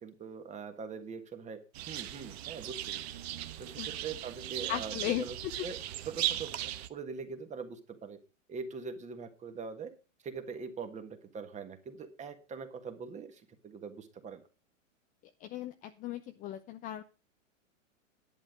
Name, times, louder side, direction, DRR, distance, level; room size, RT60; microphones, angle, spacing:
voice 1, 0.0-3.0 3.6-5.4 5.6-8.2 8.5-9.9 10.2-14.4, right 5 dB, 20° right, 8 dB, 1.6 m, -43 dB
sound 1, 1.7-6.9, right 13 dB, 55° right, 1.1 m, -38 dB
voice 2, 4.7-5.3 5.6-5.7 15.4-17.0, left 12 dB, 20° left, 8 dB, 0.5 m, -36 dB
11.0 x 8.8 x 5.1 m, 0.31 s
hypercardioid pair, 130°, 39 cm